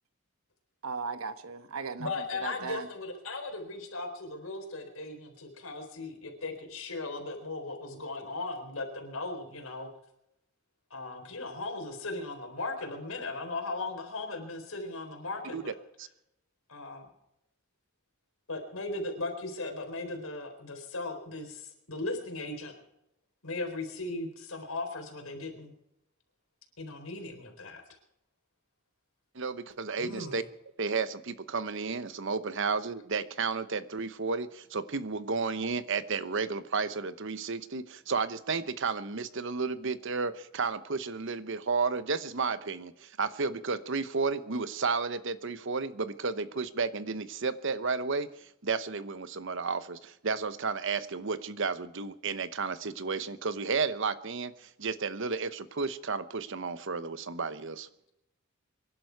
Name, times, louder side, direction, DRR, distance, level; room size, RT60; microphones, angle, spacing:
voice 1, 0.8-2.9, right 4 dB, 90° right, 1.2 m, -37 dB
voice 2, 2.0-9.9 10.9-15.7 16.7-17.1 18.5-22.7 23.4-25.7 26.8-27.8 30.0-30.4, left 2 dB, 85° left, 4.1 m, -37 dB
voice 3, 29.3-30.4 30.8-57.9, right 4 dB, 60° right, 1.0 m, -32 dB
25.5 x 11.0 x 4.7 m
head